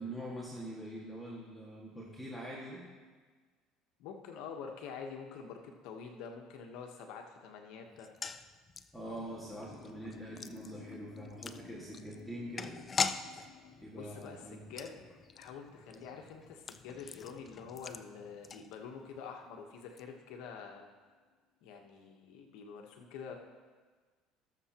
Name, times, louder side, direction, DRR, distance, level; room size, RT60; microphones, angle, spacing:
voice 1, 0.0-2.8 8.9-12.8 13.8-14.6, right 1 dB, 5° right, -6 dB, 1.9 m, -44 dB
voice 2, 4.0-8.1 13.9-15.0 15.3-20.9 21.6-23.3, left 6 dB, 75° left, 3 dB, 1.1 m, -47 dB
sound 1, 7.9-19.2 19.4-19.5 19.8-20.0, left 5 dB, 30° left, 0.4 m, -42 dB
sound 2, 9.0-19.2 19.4-21.1, left 6 dB, 50° left, 1.2 m, -56 dB
18.5 x 6.9 x 2.9 m, 1.5 s
supercardioid pair, 105°, 0 cm